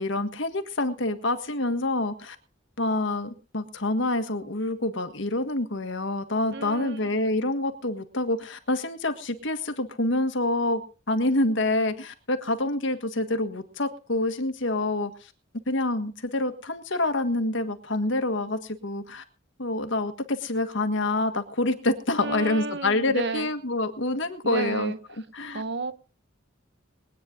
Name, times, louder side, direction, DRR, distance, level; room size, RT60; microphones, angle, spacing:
voice 1, 0.0-2.3 2.8-10.8 11.1-15.1 15.7-19.2 19.6-24.9 25.3-25.6, left 2 dB, 65° left, 8 dB, 1.6 m, -27 dB
voice 2, 6.5-7.2 22.2-23.5 24.4-25.0 25.5-25.9, right 3 dB, 60° right, 13 dB, 1.0 m, -32 dB
22.5 x 9.4 x 3.8 m, 0.35 s
head